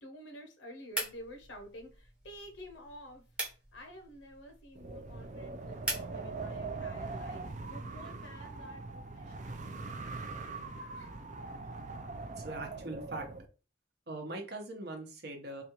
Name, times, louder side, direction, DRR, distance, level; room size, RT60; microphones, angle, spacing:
voice 1, 0.0-3.2 3.7-9.6 10.0-11.1, equal, 65° left, 0.7 m, -50 dB
sound 1, 0.9-6.1, right 2 dB, 5° right, 1.0 m, -42 dB
Wind, 4.7-13.5, right 3 dB, 40° right, 0.4 m, -42 dB
voice 2, 12.4-13.3 14.1-15.6, right 2 dB, 55° right, 0.8 m, -42 dB
4.1 x 2.4 x 2.9 m
head